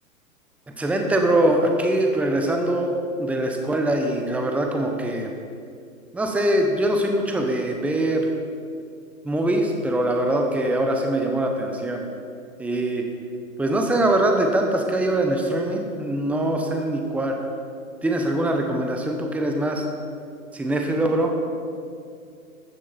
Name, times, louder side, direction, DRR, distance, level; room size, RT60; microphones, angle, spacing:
voice 1, 0.8-5.3 6.1-8.3 9.2-12.0 12.6-13.1 13.6-17.4 18.0-19.8 20.5-21.3, right 1 dB, 5° right, 3 dB, 1.0 m, -23 dB
15.0 x 12.0 x 4.4 m, 2.4 s
hypercardioid pair, 120°, 42 cm